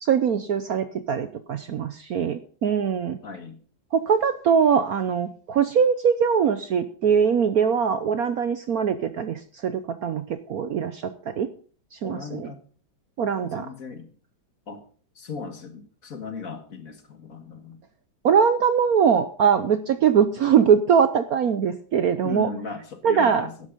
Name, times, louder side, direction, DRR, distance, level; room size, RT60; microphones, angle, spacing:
voice 1, 0.0-3.2 3.9-11.5 11.9-12.5 13.2-13.7 18.2-22.5 23.0-23.5, right 7 dB, 60° right, 11 dB, 1.0 m, -22 dB
voice 2, 3.2-3.6 12.0-12.6 13.4-14.1 14.7-14.8 15.2-17.8 22.2-23.7, left 5 dB, 45° left, 8 dB, 1.9 m, -37 dB
11.5 x 10.5 x 5.2 m, 0.42 s
omnidirectional pair, 2.1 m